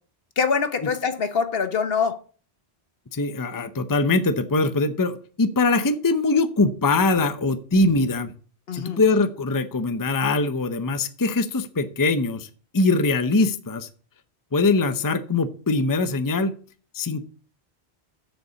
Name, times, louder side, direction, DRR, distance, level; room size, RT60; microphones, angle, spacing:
voice 1, 0.4-2.2 8.7-9.0, left 5 dB, 65° left, 1.2 m, -24 dB
voice 2, 3.1-8.3 8.7-13.9 14.5-16.5 16.9-17.2, left 3 dB, 20° left, 0.6 m, -22 dB
7.8 x 6.8 x 6.9 m
omnidirectional pair, 1.1 m